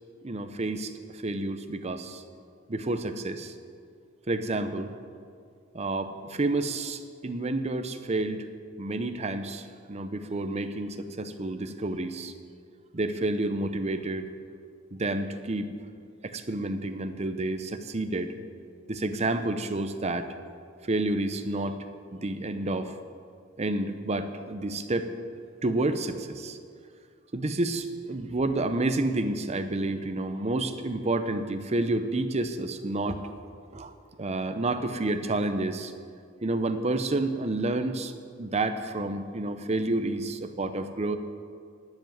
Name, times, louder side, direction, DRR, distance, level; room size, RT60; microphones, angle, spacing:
voice 1, 0.2-2.2 2.7-3.5 4.3-4.9 5.7-8.5 8.8-12.3 12.9-14.3 14.9-15.7 16.2-18.3 18.9-20.3 20.8-21.8 22.1-22.9 23.6-25.1 25.6-26.6 27.3-33.2 33.7-33.9 34.2-35.9 36.4-38.1 38.4-41.2, right 2 dB, 30° right, 9 dB, 0.7 m, -29 dB
10.5 x 7.1 x 9.3 m, 2.2 s
head